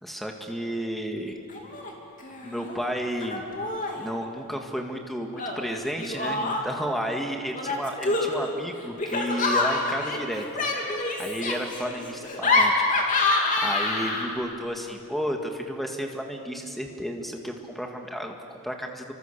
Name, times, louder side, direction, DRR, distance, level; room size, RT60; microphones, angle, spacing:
voice 1, 0.0-1.4 2.4-3.5 3.9-10.6 11.0-13.0 13.6-19.1, equal, ahead, 2 dB, 2.0 m, -32 dB
Laughter, 1.5-1.9 2.2-2.8 3.2-4.1 5.4-6.9 7.5-14.5, left 2 dB, 35° left, 2.9 m, -27 dB
29.5 x 24.5 x 6.9 m, 2.7 s
head